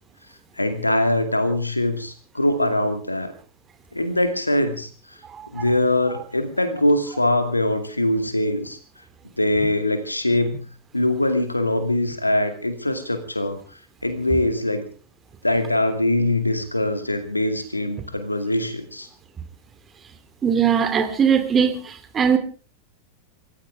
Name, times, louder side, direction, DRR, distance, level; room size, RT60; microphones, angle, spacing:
voice 1, 0.6-3.3 3.9-4.9 5.5-8.8 9.4-10.7 10.9-13.6 14.0-14.9 15.4-19.1, left 1 dB, 85° left, 9 dB, 2.4 m, -22 dB
voice 2, 20.4-21.8 22.1-22.4, right 7 dB, 25° right, 9 dB, 2.8 m, -19 dB
27.0 x 15.0 x 3.6 m, 0.35 s
figure-of-eight pair, 90°, 0 cm